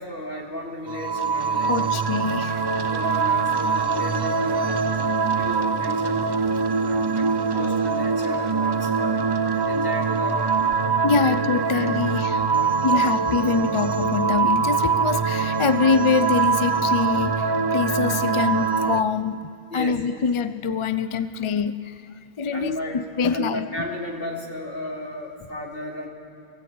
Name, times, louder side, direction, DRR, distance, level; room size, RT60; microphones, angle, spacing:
voice 1, 0.0-2.2 2.9-6.2 6.8-9.3 9.6-11.3 11.7-12.0 12.5-13.0 19.7-20.0 22.5-23.0 23.3-26.1, left 1 dB, 60° left, -2 dB, 3.1 m, -34 dB
sound 1, 0.9-19.0, right 5 dB, 40° right, 0.4 m, -23 dB
voice 2, 1.7-2.6 7.5-7.7 11.0-12.4 12.8-22.0 22.4-23.7, left 5 dB, 40° left, 12 dB, 0.5 m, -24 dB
24.5 x 17.5 x 8.5 m, 2.8 s
omnidirectional pair, 1.1 m